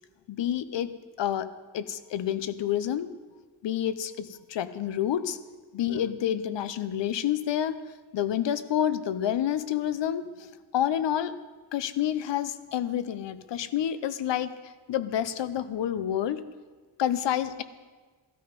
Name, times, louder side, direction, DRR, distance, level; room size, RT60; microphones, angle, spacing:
voice 1, 0.3-3.1 3.6-5.4 5.7-7.8 8.1-11.4 11.7-16.5 17.0-17.6, left 10 dB, 90° left, 13 dB, 0.8 m, -29 dB
14.0 x 13.0 x 5.2 m, 1.4 s
wide cardioid pair, 155°, 42 cm